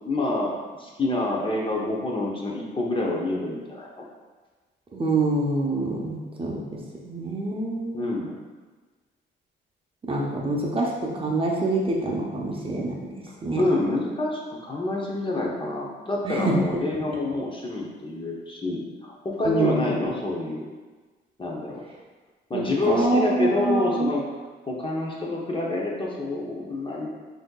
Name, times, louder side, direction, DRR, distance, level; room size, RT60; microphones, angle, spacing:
voice 1, 0.0-4.0 7.9-8.4 13.6-20.6 21.4-21.8 22.5-24.3 24.7-27.1, left 2 dB, 25° left, -2 dB, 0.7 m, -27 dB
voice 2, 4.9-6.6 7.0-7.9 10.1-12.9 13.4-13.6 16.2-16.6 19.4-19.8 22.5-24.1, right 2 dB, 25° right, -2 dB, 0.7 m, -25 dB
5.9 x 2.8 x 2.3 m, 1.4 s
cardioid pair, 90°, 20 cm